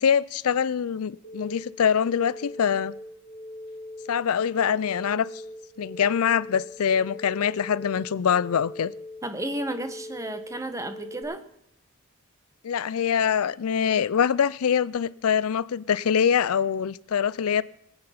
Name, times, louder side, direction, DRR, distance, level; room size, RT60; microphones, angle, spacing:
voice 1, 0.0-2.9 4.1-5.3 5.8-8.9 12.6-17.6, left 7 dB, 80° left, 0.4 m, -24 dB
sound 1, 1.2-11.2, left 1 dB, 30° left, 4.4 m, -41 dB
voice 2, 9.2-11.4, right 1 dB, 15° right, 1.1 m, -32 dB
21.0 x 8.7 x 5.7 m
head